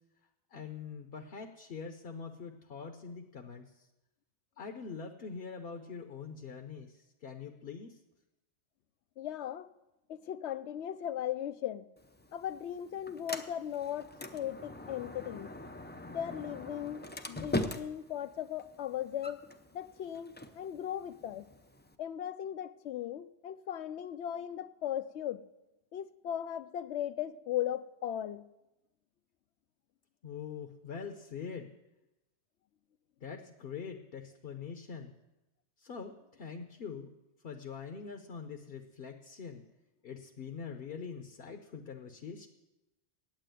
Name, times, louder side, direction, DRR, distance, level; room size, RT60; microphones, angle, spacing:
voice 1, 0.5-3.7 4.6-8.0 30.2-31.7 33.2-35.1 35.8-37.1 37.4-39.6 40.0-42.5, left 6 dB, 60° left, 6 dB, 1.0 m, -44 dB
voice 2, 9.2-9.7 10.1-11.9 12.3-15.6 16.1-17.0 17.3-19.4 19.7-21.5 22.0-25.5 25.9-28.4, left 10 dB, 75° left, 15 dB, 0.9 m, -37 dB
Sliding door, 12.0-22.0, left 1 dB, 15° left, 0.4 m, -42 dB
9.2 x 8.7 x 9.1 m, 0.98 s
omnidirectional pair, 1.2 m